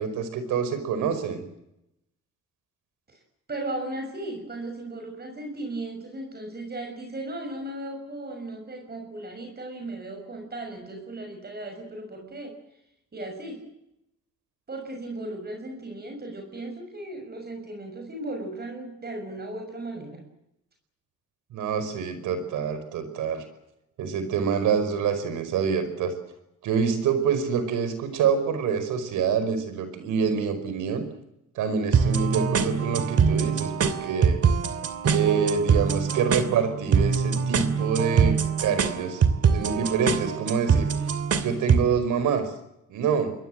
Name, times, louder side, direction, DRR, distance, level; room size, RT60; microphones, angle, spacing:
voice 1, 0.0-1.4 21.5-23.5 24.0-26.1 26.6-31.1 31.6-34.4 35.1-39.2 39.5-40.9 41.4-42.4 42.9-43.3, right 6 dB, 85° right, 11 dB, 5.2 m, -26 dB
voice 2, 3.5-12.6 13.1-13.7 14.7-20.2, right 2 dB, 30° right, 4 dB, 6.5 m, -36 dB
sound 1, 31.9-41.9, right 6 dB, 55° right, 2.7 m, -23 dB
27.5 x 21.5 x 7.8 m, 0.84 s
cardioid pair, 90°, 30 cm